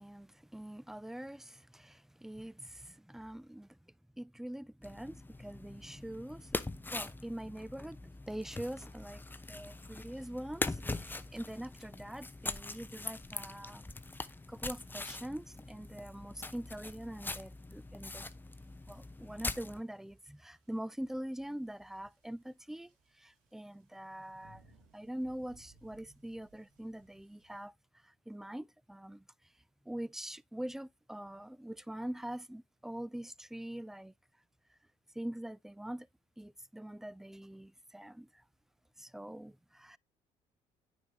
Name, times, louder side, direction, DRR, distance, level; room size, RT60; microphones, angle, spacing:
voice 1, 0.0-3.8 4.2-13.8 14.5-18.2 18.9-24.6 24.9-27.7 28.0-29.2 29.9-34.1 35.1-36.1 36.4-38.4 39.0-40.0, right 1 dB, 5° right, 0.4 m, -44 dB
sound 1, 4.8-19.8, left 2 dB, 15° left, 0.8 m, -42 dB
sound 2, 8.5-27.6, right 3 dB, 85° right, 3.1 m, -70 dB
9.3 x 5.2 x 2.9 m
supercardioid pair, 65°, 14 cm